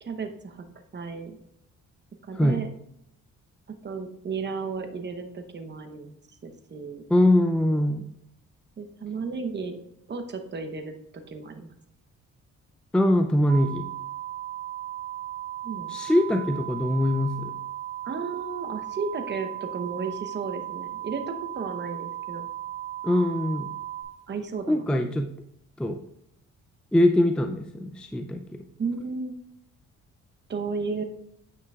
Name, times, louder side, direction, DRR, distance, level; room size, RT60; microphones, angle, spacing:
voice 1, 0.0-0.6 0.9-1.4 2.3-2.7 3.8-6.1 6.4-7.0 8.8-9.8 10.1-10.9 11.3-11.7 15.6-15.9 16.4-16.5 18.0-22.5 24.3-25.1 28.8-29.4 30.5-31.0, right 4 dB, 35° right, 6 dB, 0.9 m, -33 dB
voice 2, 7.1-8.1 12.9-13.9 15.9-17.5 23.0-23.7 24.7-25.3 25.8-26.0 26.9-28.6, left 1 dB, 5° left, 5 dB, 0.4 m, -23 dB
sound 1, 13.5-24.0, right 13 dB, 55° right, 2.2 m, -36 dB
9.2 x 5.8 x 2.4 m, 0.76 s
cardioid pair, 90°, 30 cm